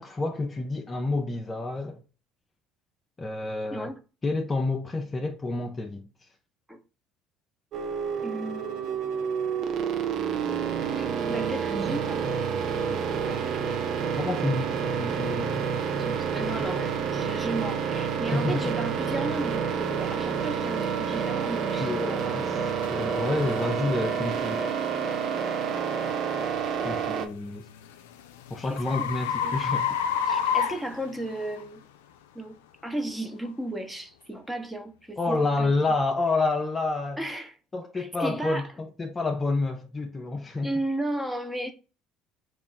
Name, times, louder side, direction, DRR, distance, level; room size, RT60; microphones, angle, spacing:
voice 1, 0.0-2.0 3.2-3.9 4.2-6.3 14.2-15.7 18.3-18.7 21.7-22.6 22.9-24.6 26.8-27.7 28.5-29.9 35.2-37.2 37.7-40.7, left 3 dB, 25° left, 0.5 m, -29 dB
voice 2, 3.7-4.0 6.7-6.8 8.2-9.1 11.0-12.3 12.8-13.7 16.0-22.4 28.7-29.1 29.4-29.6 30.3-31.8 32.3-32.6 32.8-35.7 37.2-37.5 37.9-38.7 40.6-41.7, right 1 dB, 10° right, 0.9 m, -34 dB
sound 1, 7.7-27.3, right 6 dB, 60° right, 0.6 m, -29 dB
sound 2, 22.8-22.9 23.5-23.7 24.3-24.5 27.1-31.6, left 7 dB, 85° left, 0.4 m, -29 dB
3.5 x 2.5 x 3.8 m
hypercardioid pair, 70°, 0 cm